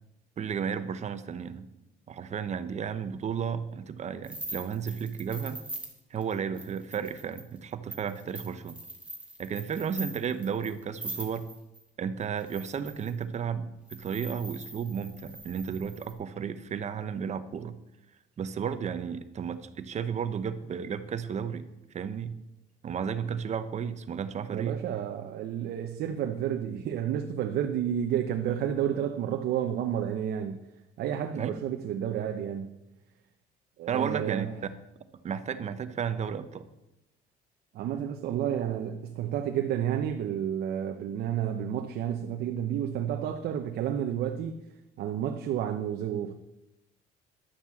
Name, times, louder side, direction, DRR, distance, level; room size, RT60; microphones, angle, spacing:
voice 1, 0.4-1.7 2.1-5.6 6.1-8.8 9.4-11.5 12.0-17.8 18.4-21.6 21.9-22.4 22.8-24.8 31.4-31.5 33.9-34.5 35.2-36.6, right 7 dB, 40° right, 0.9 m, -33 dB
sound 1, 4.2-11.8 12.4-13.2 13.9-16.1, right 1 dB, 5° right, 2.3 m, -43 dB
voice 2, 24.5-30.6 31.0-32.8 33.8-34.5 37.7-44.6 45.0-46.3, right 9 dB, 70° right, 0.9 m, -31 dB
11.5 x 7.3 x 7.1 m
cardioid pair, 110°, 17 cm